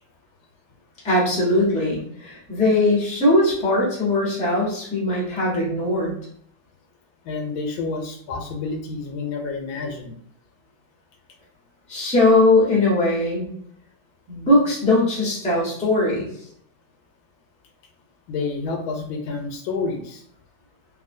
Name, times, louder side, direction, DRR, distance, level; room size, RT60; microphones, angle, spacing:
voice 1, 1.0-6.2 11.9-13.5 14.3-16.3, left 2 dB, 5° left, -6 dB, 0.5 m, -20 dB
voice 2, 7.2-10.1 18.3-20.2, left 4 dB, 80° left, 4 dB, 1.4 m, -29 dB
3.0 x 2.6 x 2.6 m, 0.66 s
omnidirectional pair, 2.2 m